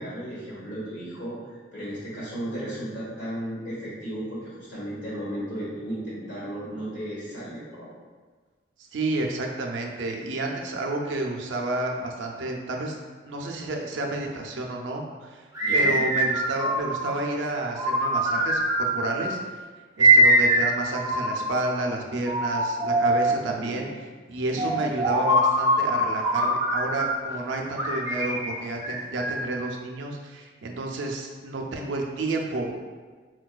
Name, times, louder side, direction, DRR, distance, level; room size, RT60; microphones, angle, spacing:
voice 1, 0.0-7.9 15.6-16.0 23.2-23.9 24.5-24.9, right 1 dB, 90° left, -11 dB, 1.4 m, -35 dB
voice 2, 8.9-13.0 13.2-15.5 15.7-19.4 20.0-23.9 24.3-32.7, right 2 dB, 90° right, 1 dB, 0.4 m, -30 dB
sound 1, 15.5-17.2 17.7-19.3 20.0-21.6 22.3-23.5 24.6-27.3 27.8-29.6, right 1 dB, 15° right, 0.4 m, -23 dB
4.5 x 2.2 x 2.3 m, 1.4 s
head